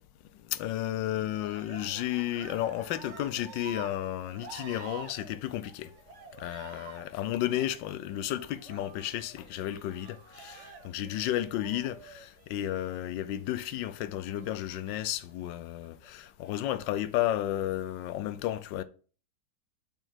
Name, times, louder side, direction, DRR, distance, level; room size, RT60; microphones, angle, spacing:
voice 1, 0.5-5.9 6.4-18.8, left 13 dB, 90° left, 1.3 m, -33 dB
Cheering, 1.3-13.0 14.2-15.1 15.8-16.5, right 5 dB, 50° right, 1.0 m, -49 dB
5.5 x 4.6 x 5.6 m
omnidirectional pair, 1.9 m